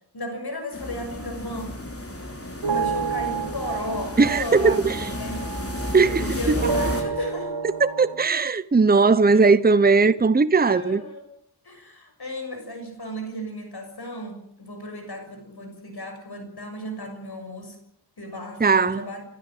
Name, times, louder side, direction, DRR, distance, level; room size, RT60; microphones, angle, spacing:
voice 1, 0.1-1.8 2.6-5.4 6.2-7.6 9.3-9.4 9.7-10.1 10.7-11.3 11.6-17.8 18.2-19.2, left 1 dB, 65° left, 6.6 m, -35 dB
sound 1, 0.7-7.0, left 1 dB, 35° left, 4.1 m, -32 dB
sound 2, 2.6-6.3 6.6-8.3, right 6 dB, 80° right, 2.0 m, -30 dB
voice 2, 4.2-5.0 5.9-6.6 7.8-11.0 18.6-19.1, right 4 dB, 20° right, 0.8 m, -18 dB
29.5 x 12.5 x 9.0 m
wide cardioid pair, 75°, 41 cm